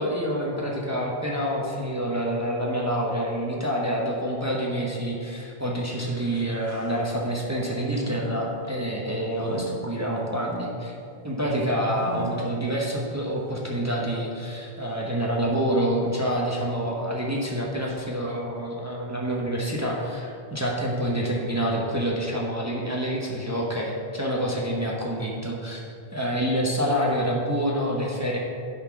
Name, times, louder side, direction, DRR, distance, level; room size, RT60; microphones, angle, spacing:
voice 1, 0.0-10.9 11.2-25.8 26.1-28.4, equal, 15° right, -3 dB, 1.0 m, -27 dB
sound 1, 5.9-7.5 8.0-13.2 13.7-13.8 14.7-14.8, right 4 dB, 80° right, 1.0 m, -41 dB
10.0 x 4.4 x 5.9 m, 2.4 s
omnidirectional pair, 1.1 m